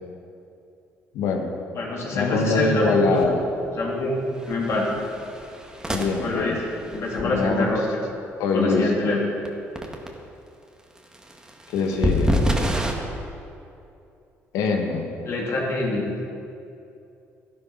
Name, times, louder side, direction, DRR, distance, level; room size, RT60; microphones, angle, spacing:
voice 1, 1.1-1.5 2.1-3.4 5.9-6.6 7.2-7.7 8.4-9.2 11.7-12.4 14.5-15.1, left 4 dB, 80° left, 3 dB, 1.6 m, -24 dB
voice 2, 1.7-3.4 3.8-4.2 4.5-4.9 6.2-6.6 6.9-8.1 8.5-9.3 15.2-16.1, left 2 dB, 55° left, -2 dB, 3.3 m, -25 dB
sound 1, 3.2-3.3 3.6-3.9 4.4-7.2 9.4-9.5 9.8-10.1 11.0-12.9, equal, 15° right, 1.9 m, -27 dB
11.5 x 10.5 x 5.9 m, 2.7 s
supercardioid pair, 75°, 6 cm